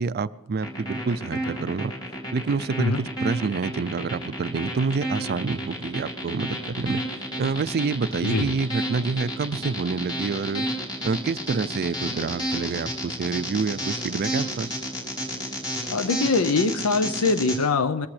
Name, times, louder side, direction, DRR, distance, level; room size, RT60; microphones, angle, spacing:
voice 1, 0.0-1.9 2.3-7.0 7.4-10.7 11.0-14.7, right 4 dB, 45° right, 16 dB, 0.4 m, -27 dB
sound 1, 0.6-17.6, equal, 20° left, 4.1 m, -31 dB
voice 2, 15.9-18.1, left 3 dB, 70° left, 12 dB, 0.6 m, -23 dB
21.0 x 14.5 x 3.3 m, 1.0 s
head